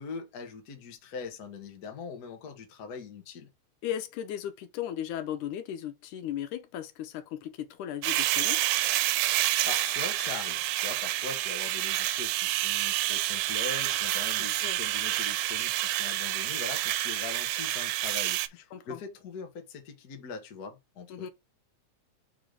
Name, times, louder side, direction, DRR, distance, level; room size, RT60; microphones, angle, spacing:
voice 1, 0.0-3.5 9.2-21.3, left 5 dB, 45° left, 1.3 m, -42 dB
voice 2, 3.8-8.6 14.6-14.8 18.7-19.0 21.1-21.3, left 10 dB, 85° left, 2.4 m, -36 dB
sound 1, 8.0-18.5, right 15 dB, 85° right, 2.0 m, -28 dB
4.9 x 3.8 x 5.0 m
omnidirectional pair, 3.5 m